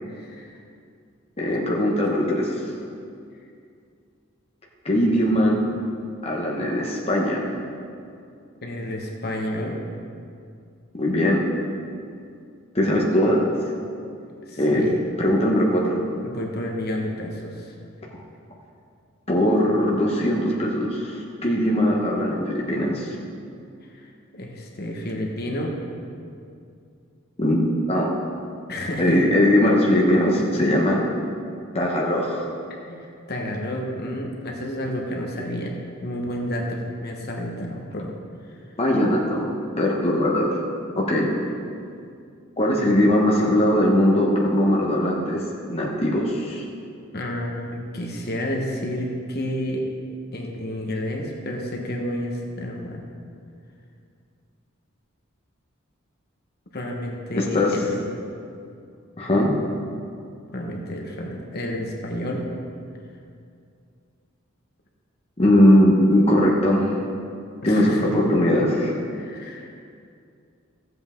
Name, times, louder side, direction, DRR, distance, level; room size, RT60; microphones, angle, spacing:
voice 1, 0.1-0.5 8.6-9.8 14.3-15.0 16.2-17.7 23.9-24.1 24.3-25.7 28.7-29.2 32.9-35.7 36.0-38.1 47.1-49.8 50.3-53.0 56.7-58.0 60.5-62.5 67.6-68.1 69.1-69.7, equal, 50° left, 0 dB, 1.3 m, -30 dB
voice 2, 1.4-2.6 4.8-5.6 6.2-7.5 11.0-11.5 12.7-13.5 14.6-14.8 15.2-16.1 19.3-23.1 27.4-28.1 29.0-31.0 31.7-32.5 38.8-39.5 39.8-40.6 41.0-41.3 42.6-45.4 45.7-46.6 57.3-57.7 59.2-59.5 65.4-66.9 67.6-68.9, left 1 dB, 30° left, -3 dB, 1.1 m, -20 dB
15.0 x 7.9 x 3.8 m, 2.4 s
head